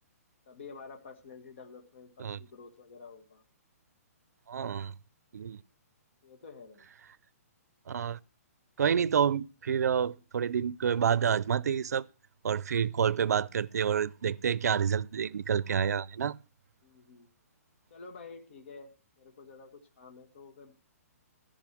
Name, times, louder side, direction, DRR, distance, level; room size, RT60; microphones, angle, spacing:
voice 1, 0.5-3.4 6.2-6.9 13.1-13.4 16.8-17.3 17.9-20.7, left 4 dB, 50° left, 2.0 m, -50 dB
voice 2, 4.5-4.9 5.3-5.6 7.9-8.2 8.8-12.0 12.4-16.4, right 7 dB, 85° right, 0.5 m, -28 dB
14.0 x 5.2 x 7.6 m
hypercardioid pair, 175°, 8 cm